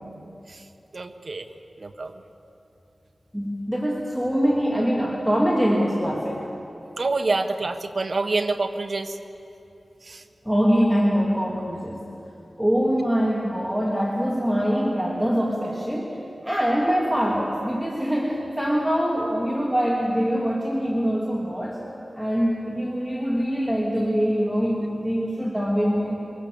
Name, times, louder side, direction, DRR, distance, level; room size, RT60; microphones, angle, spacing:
voice 1, 0.9-1.4 1.8-2.1 7.0-9.1 10.1-10.2, right 3 dB, 55° right, 6 dB, 1.4 m, -26 dB
voice 2, 3.3-6.5 10.4-12.1 12.6-21.8 22.1-26.1, equal, 5° right, -4 dB, 2.9 m, -23 dB
24.0 x 22.5 x 7.0 m, 2.8 s
wide cardioid pair, 75°, 0 cm